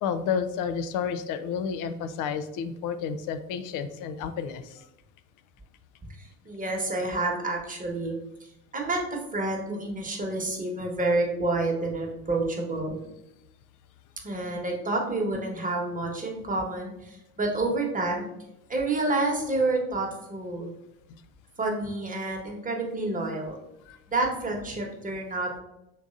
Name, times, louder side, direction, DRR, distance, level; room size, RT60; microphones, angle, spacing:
voice 1, 0.0-4.9 23.9-24.0, left 7 dB, 45° left, 10 dB, 0.5 m, -31 dB
voice 2, 6.2-8.1 8.4-8.5 8.7-13.0 14.2-18.3 18.7-20.7 21.6-23.6 24.1-25.6, right 2 dB, 20° right, 0 dB, 1.2 m, -29 dB
5.6 x 3.4 x 2.5 m, 0.87 s
figure-of-eight pair, 60°, 46 cm